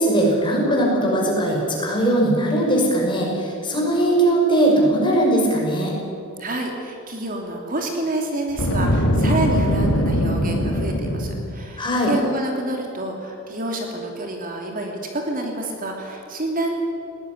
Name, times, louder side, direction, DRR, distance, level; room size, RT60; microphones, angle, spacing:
voice 1, 0.0-5.9 11.8-12.1, right 1 dB, 20° left, -2 dB, 6.0 m, -19 dB
voice 2, 6.4-16.7, right 1 dB, 40° right, 2 dB, 2.9 m, -28 dB
Boom, 8.5-11.6, equal, 85° left, 2.9 m, -21 dB
20.0 x 18.0 x 9.7 m, 2.7 s
head